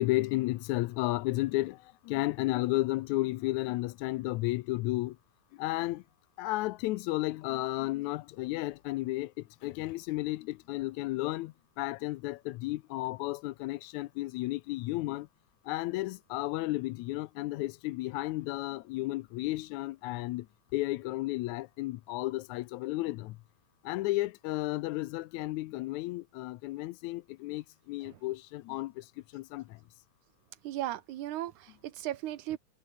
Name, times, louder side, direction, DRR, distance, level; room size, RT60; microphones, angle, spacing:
voice 1, 0.0-5.2 5.6-6.0 6.4-15.3 15.7-20.5 20.7-23.4 23.8-29.1 29.3-29.8, left 18 dB, 80° left, 1.9 m, -33 dB
voice 2, 30.6-32.6, right 13 dB, 85° right, 2.6 m, -36 dB
omnidirectional pair, 3.4 m